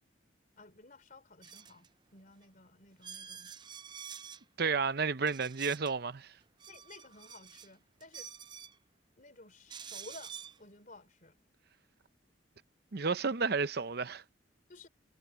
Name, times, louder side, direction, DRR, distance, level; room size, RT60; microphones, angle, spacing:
voice 1, 0.6-3.6 6.7-8.3 9.2-11.4 14.7-14.9, left 2 dB, 45° left, 3.3 m, -55 dB
sound 1, 1.4-1.9 2.4-2.5 3.0-4.4 5.3-5.9 6.4-7.7 8.0-8.8 9.7-10.6, right 8 dB, 25° right, 0.5 m, -48 dB
voice 2, 4.6-6.3 12.9-14.2, right 5 dB, 55° right, 0.7 m, -31 dB
head